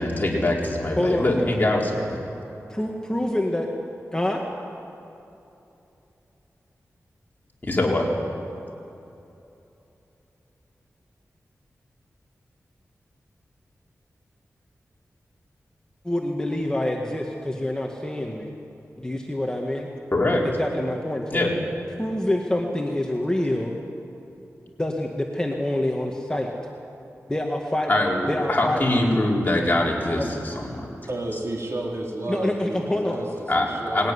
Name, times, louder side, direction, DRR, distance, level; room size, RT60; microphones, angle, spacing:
voice 1, 0.0-2.2 7.6-8.1 20.1-20.5 21.3-21.5 27.9-30.9 33.5-34.1, left 1 dB, 35° left, -2 dB, 4.5 m, -23 dB
voice 2, 1.0-1.6 2.7-3.7 4.1-4.4 16.0-18.5 19.0-19.9 20.6-21.5 22.0-23.8 24.8-26.5 27.3-27.9 28.3-28.8 30.2-30.3 32.3-33.3, left 1 dB, 15° left, 0 dB, 2.0 m, -26 dB
voice 3, 31.1-34.1, right 1 dB, 55° right, -1 dB, 4.1 m, -32 dB
21.0 x 18.5 x 9.9 m, 2.9 s
wide cardioid pair, 80°, 5 cm